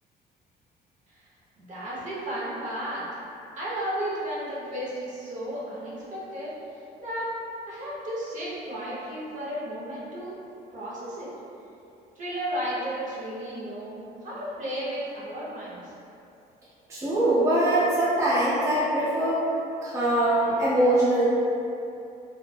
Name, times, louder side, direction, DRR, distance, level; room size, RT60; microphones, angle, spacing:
voice 1, 1.6-3.0 3.5-6.5 7.0-7.3 7.7-10.3 10.7-11.3 12.2-15.9, equal, 50° right, -7 dB, 0.8 m, -33 dB
voice 2, 16.9-19.4 19.8-21.2, right 1 dB, 20° right, -10 dB, 0.5 m, -22 dB
2.4 x 2.1 x 2.6 m, 2.7 s
cardioid pair, 110°, 17 cm